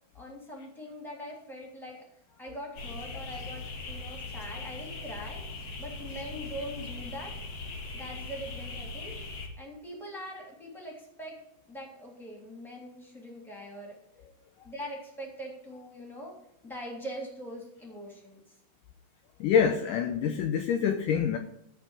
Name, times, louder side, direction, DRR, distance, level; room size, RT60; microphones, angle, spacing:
voice 1, 0.1-2.1 2.4-5.4 5.8-7.3 7.9-9.2 9.6-11.4 11.7-14.0 14.6-16.4 16.6-18.4, equal, ahead, -1 dB, 2.6 m, -42 dB
sound 1, 2.7-9.5, left 3 dB, 45° left, 2.4 m, -40 dB
voice 2, 19.4-21.4, left 7 dB, 75° left, 5 dB, 2.1 m, -26 dB
13.0 x 4.6 x 8.3 m, 0.79 s
omnidirectional pair, 4.3 m